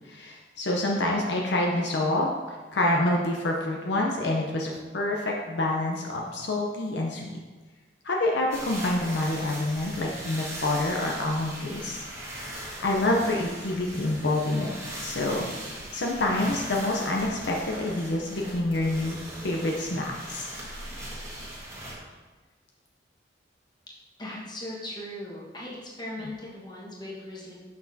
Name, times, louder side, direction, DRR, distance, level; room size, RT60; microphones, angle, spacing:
voice 1, 0.0-7.3 8.0-14.7 15.0-15.5 15.9-19.2 19.4-20.5, left 1 dB, 65° left, -1 dB, 0.7 m, -27 dB
sound 1, 8.5-22.0, right 1 dB, 15° right, 1.6 m, -39 dB
voice 2, 24.2-27.5, left 1 dB, 25° left, -6 dB, 1.4 m, -38 dB
6.4 x 6.0 x 2.8 m, 1.3 s
head